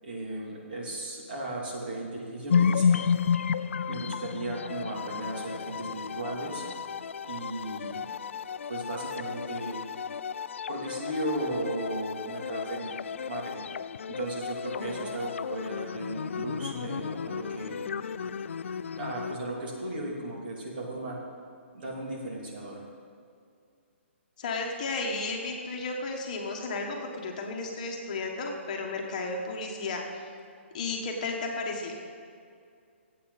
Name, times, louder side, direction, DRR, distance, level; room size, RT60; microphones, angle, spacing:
voice 1, 0.0-3.0 3.9-6.6 7.2-7.9 8.7-9.8 10.7-13.0 13.3-13.7 14.1-17.8 19.0-21.2 21.7-22.8, right 1 dB, 50° right, -3 dB, 3.0 m, -36 dB
sound 1, 2.5-19.4, left 6 dB, 75° left, 0.3 m, -32 dB
voice 2, 14.7-15.2 24.4-30.2 30.7-32.0, left 3 dB, 35° left, 1 dB, 1.4 m, -33 dB
18.5 x 8.4 x 4.2 m, 2.4 s
hypercardioid pair, 170°, 7 cm